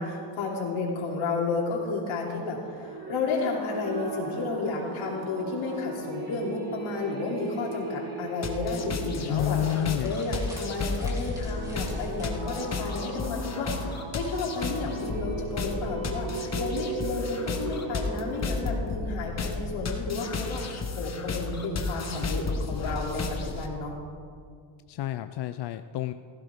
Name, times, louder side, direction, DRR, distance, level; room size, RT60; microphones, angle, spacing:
voice 1, 0.0-9.6 10.0-24.0, left 3 dB, 80° left, -2 dB, 3.2 m, -32 dB
sound 1, 2.7-18.8, right 3 dB, 45° right, 2.5 m, -38 dB
sound 2, 8.4-23.7, left 3 dB, 35° left, 1.3 m, -33 dB
sound 3, 8.6-12.6, equal, 5° right, 3.1 m, -49 dB
voice 2, 9.2-10.2 24.9-26.1, left 12 dB, 55° left, 10 dB, 0.5 m, -29 dB
16.0 x 15.5 x 3.6 m, 2.1 s
cardioid pair, 120°, 47 cm